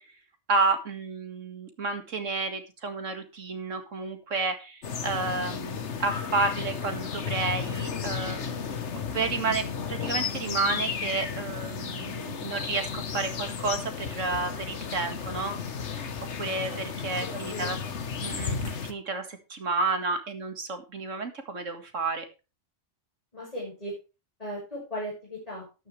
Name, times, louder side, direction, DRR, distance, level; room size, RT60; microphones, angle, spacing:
voice 1, 0.5-8.5 9.1-15.6 15.9-16.1 16.4-17.8 18.2-22.3, right 3 dB, 80° right, 7 dB, 2.3 m, -31 dB
sound 1, 4.8-18.9, left 6 dB, 65° left, 1.5 m, -33 dB
voice 2, 23.3-23.9 24.4-25.9, equal, 30° left, -6 dB, 6.0 m, -37 dB
12.5 x 10.5 x 3.3 m, 0.30 s
omnidirectional pair, 1.3 m